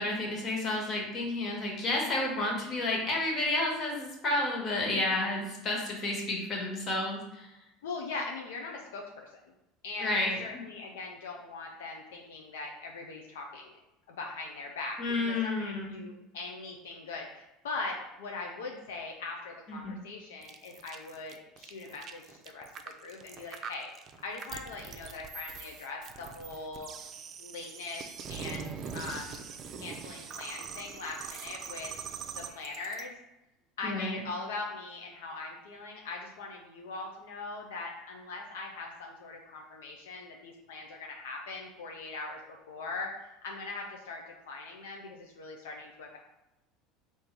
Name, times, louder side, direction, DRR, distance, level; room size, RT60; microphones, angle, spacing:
voice 1, 0.0-7.5 10.0-10.6 15.0-16.0 19.7-20.0 33.8-34.2, left 2 dB, 40° left, -1 dB, 1.5 m, -31 dB
voice 2, 4.8-5.3 7.8-9.4 9.8-13.8 14.1-15.0 15.3-22.7 23.0-23.9 24.2-26.9 27.4-28.0 28.3-29.4 29.8-31.9 32.3-33.2 33.8-46.2, left 3 dB, 85° left, 0 dB, 0.5 m, -41 dB
sound 1, 20.4-33.0, right 6 dB, 45° right, 0.5 m, -43 dB
3.5 x 2.7 x 4.5 m, 0.94 s
hypercardioid pair, 90°, 0 cm